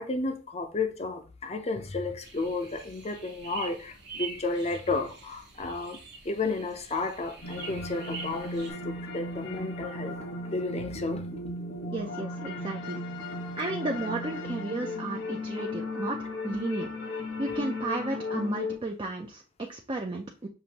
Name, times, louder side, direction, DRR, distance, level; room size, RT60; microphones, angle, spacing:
voice 1, 0.0-6.0 6.2-10.2 10.5-11.3, left 3 dB, 35° left, 0.6 m, -32 dB
sound 1, 2.2-8.7, right 4 dB, 60° right, 1.1 m, -44 dB
sound 2, 7.4-18.8, left 2 dB, 75° left, 1.3 m, -36 dB
voice 2, 11.9-13.0 13.6-17.1 17.4-20.5, right 2 dB, 25° right, 0.5 m, -33 dB
6.6 x 2.6 x 2.9 m
head